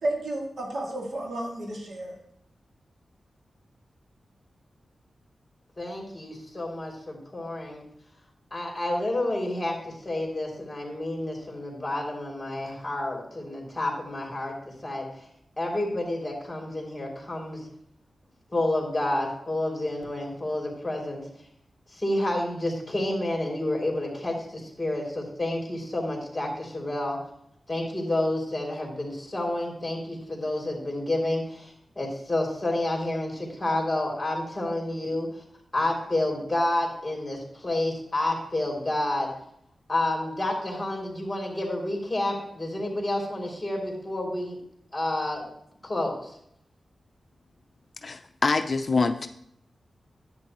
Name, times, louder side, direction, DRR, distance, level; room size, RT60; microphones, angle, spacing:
voice 1, 0.0-2.2, right 1 dB, 75° right, -1 dB, 2.4 m, -32 dB
voice 2, 5.8-7.8 8.5-15.1 15.6-17.6 18.5-21.2 22.0-27.2 27.7-31.7 32.0-35.3 35.7-39.3 39.9-44.6 44.9-45.4 45.8-46.3, left 1 dB, 20° left, -1 dB, 3.2 m, -29 dB
voice 3, 48.0-49.3, left 4 dB, 50° left, 8 dB, 0.5 m, -25 dB
10.5 x 8.6 x 3.0 m, 0.74 s
cardioid pair, 75°, 0 cm